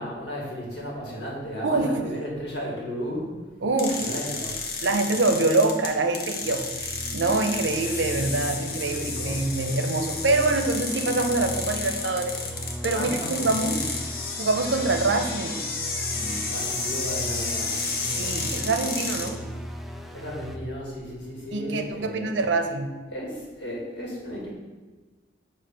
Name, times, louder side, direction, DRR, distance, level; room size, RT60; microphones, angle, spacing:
voice 1, 0.0-3.4 4.0-4.5 8.8-9.4 12.9-13.8 16.1-17.7 18.0-18.2 19.2-19.3 20.1-22.4 23.1-24.5, equal, 70° left, -2 dB, 1.7 m, -34 dB
voice 2, 1.6-2.0 3.6-4.1 4.8-12.4 12.8-13.8 14.4-15.7 18.0-19.4 21.5-22.9, right 3 dB, 85° right, 7 dB, 0.6 m, -25 dB
sound 1, 3.8-19.3, left 4 dB, 55° left, 0.8 m, -32 dB
sound 2, 6.4-20.6, equal, ahead, 0.4 m, -37 dB
7.0 x 2.8 x 5.6 m, 1.3 s
head